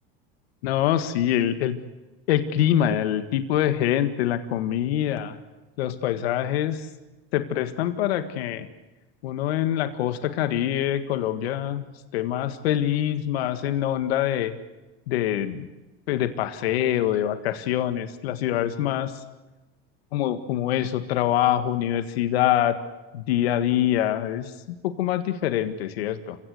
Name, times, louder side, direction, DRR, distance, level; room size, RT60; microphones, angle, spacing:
voice 1, 0.6-1.8 2.3-5.4 5.8-6.9 7.3-8.7 9.2-11.9 12.1-14.5 15.1-15.7 16.1-19.2 20.1-22.8 23.1-26.4, left 11 dB, 90° left, 10 dB, 1.8 m, -25 dB
29.0 x 17.0 x 7.9 m, 1.1 s
supercardioid pair, 115°, 30 cm